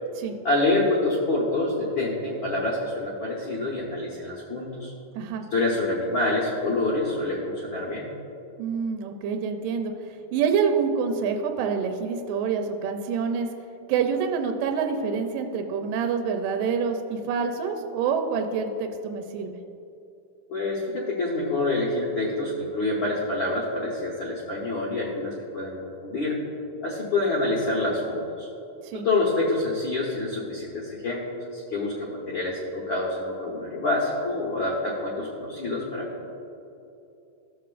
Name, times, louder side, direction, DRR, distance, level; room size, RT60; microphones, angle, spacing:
voice 1, 0.4-4.9 5.5-8.1 20.5-26.4 26.8-28.5 28.9-31.2 31.5-36.3, left 2 dB, 70° left, -5 dB, 1.2 m, -27 dB
voice 2, 8.6-9.9 10.3-13.5 13.9-19.6 28.8-29.1, right 6 dB, 80° right, 5 dB, 2.2 m, -27 dB
15.5 x 6.9 x 2.5 m, 2.7 s
omnidirectional pair, 4.0 m